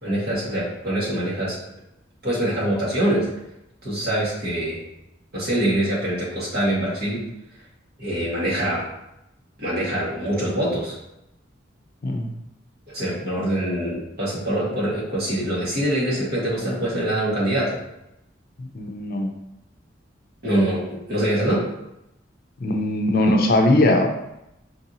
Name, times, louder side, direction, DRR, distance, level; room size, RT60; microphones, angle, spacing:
voice 1, 0.0-1.5 2.2-3.3 3.8-4.8 5.3-7.2 8.0-8.9 9.6-11.0 12.9-17.7 20.4-21.6, right 1 dB, 60° right, -7 dB, 1.4 m, -24 dB
voice 2, 18.6-19.3 22.6-24.1, left 1 dB, 55° left, 3 dB, 0.5 m, -20 dB
4.6 x 2.6 x 2.8 m, 0.85 s
head